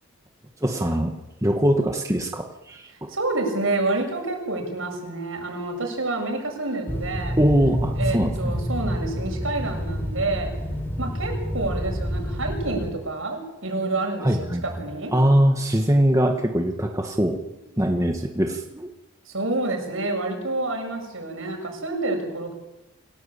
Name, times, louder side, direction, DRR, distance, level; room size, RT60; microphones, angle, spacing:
voice 1, 0.6-1.1 1.4-3.1 7.4-8.3 14.2-14.6 15.1-17.4 17.8-18.9, equal, 15° right, 2 dB, 1.7 m, -22 dB
voice 2, 3.1-7.4 8.0-10.5 11.0-14.3 14.6-15.1 19.3-22.5, right 2 dB, 65° right, 3 dB, 7.3 m, -28 dB
sound 1, 6.9-12.9, equal, 10° left, 3.7 m, -28 dB
28.0 x 17.0 x 8.7 m, 0.96 s
head